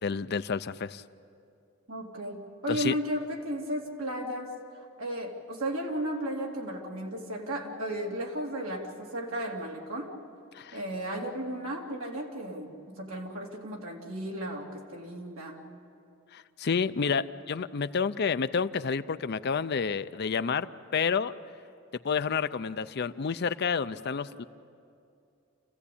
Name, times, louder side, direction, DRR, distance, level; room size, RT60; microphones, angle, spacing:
voice 1, 0.0-1.0 2.7-2.9 10.5-10.8 16.3-20.7 20.9-21.3 22.0-24.4, left 5 dB, 50° left, 13 dB, 0.5 m, -29 dB
voice 2, 1.9-4.5 5.0-10.1 10.7-15.6, right 1 dB, 70° right, -1 dB, 2.9 m, -34 dB
28.0 x 15.5 x 8.5 m, 2.5 s
head